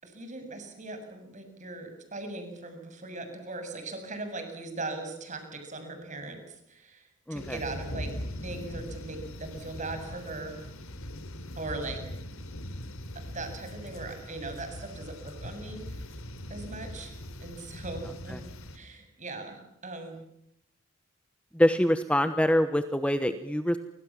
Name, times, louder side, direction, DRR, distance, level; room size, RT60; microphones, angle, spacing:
voice 1, 0.0-8.1 8.4-10.6 11.6-12.0 13.3-16.1 16.5-17.1 17.4-18.4 18.7-20.2, right 2 dB, 35° right, 6 dB, 7.3 m, -39 dB
voice 2, 7.3-7.6 18.3-18.4 21.5-23.8, equal, 5° left, 9 dB, 1.1 m, -25 dB
sound 1, 7.4-18.8, left 1 dB, 70° left, 3.8 m, -41 dB
30.0 x 25.5 x 7.4 m, 0.77 s
head